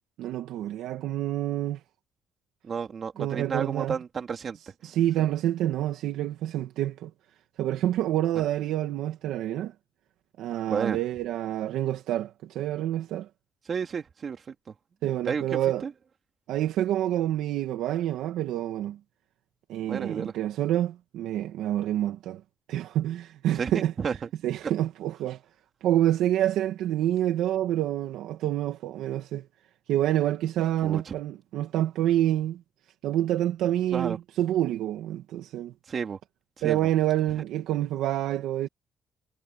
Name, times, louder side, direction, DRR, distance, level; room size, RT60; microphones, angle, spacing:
voice 1, 0.2-1.8 3.2-4.0 4.8-7.1 7.6-9.7 10.4-13.3 15.0-15.8 16.5-19.0 19.7-22.4 22.7-23.9 24.4-25.4 25.8-29.5 29.9-32.6 33.0-35.7 36.6-38.7, right 12 dB, 90° right, 2.1 m, -27 dB
voice 2, 2.6-4.6 8.3-8.5 10.7-11.0 13.6-14.7 15.2-15.9 19.9-20.3 23.5-24.3 30.8-31.1 33.9-34.2 35.9-36.2 36.6-36.9, right 6 dB, 45° right, 3.3 m, -32 dB
cardioid pair, 90°, 0 cm